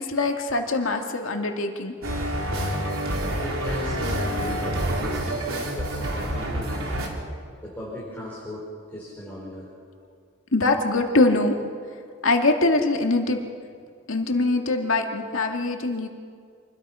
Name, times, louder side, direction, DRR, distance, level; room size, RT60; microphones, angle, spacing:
voice 1, 0.0-1.9 10.5-11.6 12.2-13.4 14.1-16.1, left 2 dB, 75° left, 3 dB, 2.3 m, -23 dB
sound 1, 2.0-7.1, right 1 dB, 85° right, 3.7 m, -27 dB
voice 2, 3.4-7.2 7.6-9.7, equal, 10° left, -8 dB, 5.1 m, -37 dB
28.0 x 21.5 x 5.8 m, 2.2 s
head